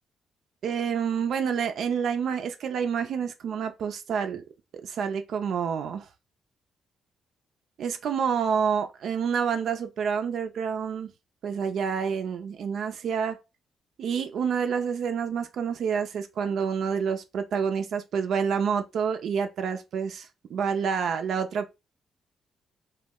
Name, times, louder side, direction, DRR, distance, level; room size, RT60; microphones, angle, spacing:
voice 1, 0.6-4.4 4.8-6.1 7.8-11.1 11.4-13.4 14.0-21.7, right 7 dB, 70° right, 0.3 m, -28 dB
2.2 x 2.0 x 3.5 m
supercardioid pair, 60°, 0 cm